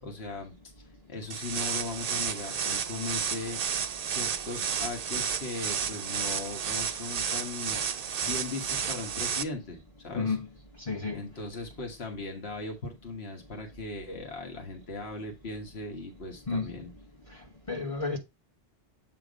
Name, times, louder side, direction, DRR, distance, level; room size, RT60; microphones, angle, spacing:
voice 1, 0.0-3.6 4.1-7.8 8.2-10.4 11.1-16.9, left 3 dB, 70° left, 1.6 m, -38 dB
sound 1, 1.3-9.4, right 7 dB, 50° right, 0.5 m, -32 dB
voice 2, 10.1-10.5 10.9-11.2 16.5-16.7 17.7-18.2, left 4 dB, 30° left, 1.1 m, -30 dB
7.9 x 3.0 x 5.0 m
omnidirectional pair, 1.1 m